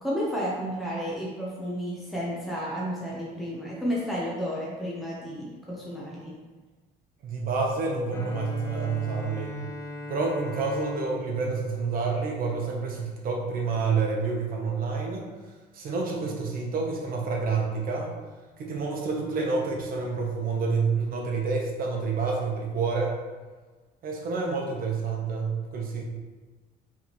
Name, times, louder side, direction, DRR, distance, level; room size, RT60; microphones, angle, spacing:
voice 1, 0.0-6.3, equal, ahead, -6 dB, 0.9 m, -32 dB
voice 2, 7.2-9.6 10.1-15.2 15.7-18.1 18.6-23.2 24.0-26.0, right 4 dB, 60° right, 0 dB, 1.0 m, -28 dB
Bowed string instrument, 8.1-13.0, left 2 dB, 15° left, 0.5 m, -39 dB
4.5 x 3.5 x 3.1 m, 1.3 s
cardioid pair, 110°, 17 cm